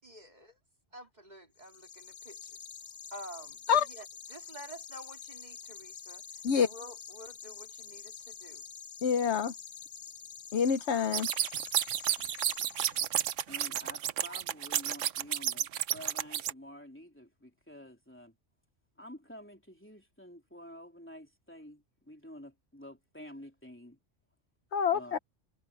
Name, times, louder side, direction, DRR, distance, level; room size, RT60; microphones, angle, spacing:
voice 1, 0.0-0.6 0.9-2.7 3.1-6.2 6.5-8.7, equal, 35° right, 3.8 m, -49 dB
sound 1, 1.6-13.4, left 7 dB, 45° left, 0.4 m, -47 dB
voice 2, 9.0-9.5 10.5-11.3 24.7-25.2, left 7 dB, 70° left, 1.1 m, -27 dB
sound 2, 11.1-16.5, right 10 dB, 85° right, 1.1 m, -31 dB
voice 3, 13.5-18.4 19.0-24.0 24.9-25.2, equal, 10° left, 3.4 m, -49 dB
omnidirectional pair, 1.2 m